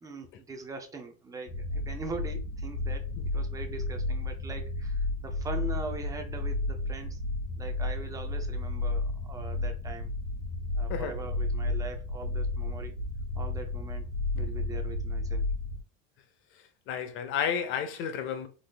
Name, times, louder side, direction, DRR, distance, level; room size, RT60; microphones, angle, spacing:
voice 1, 0.0-7.2 7.6-10.1 10.7-13.0 13.3-14.1 14.3-15.5, right 3 dB, 10° right, 0.4 m, -42 dB
sound 1, 1.5-15.8, left 2 dB, 80° left, 1.7 m, -32 dB
voice 2, 16.9-18.5, left 8 dB, 35° left, 0.6 m, -31 dB
3.9 x 2.2 x 3.2 m
cardioid pair, 155°, 34 cm